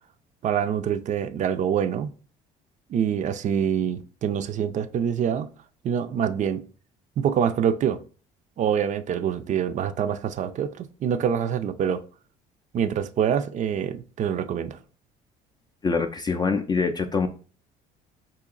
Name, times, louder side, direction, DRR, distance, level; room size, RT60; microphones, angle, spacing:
voice 1, 0.4-2.1 2.9-5.5 5.8-6.6 7.2-8.0 8.6-12.0 12.7-14.8, right 8 dB, 45° right, 0.4 m, -25 dB
voice 2, 15.8-17.3, left 4 dB, 25° left, 0.4 m, -24 dB
2.9 x 2.7 x 3.8 m
supercardioid pair, 85°, 17 cm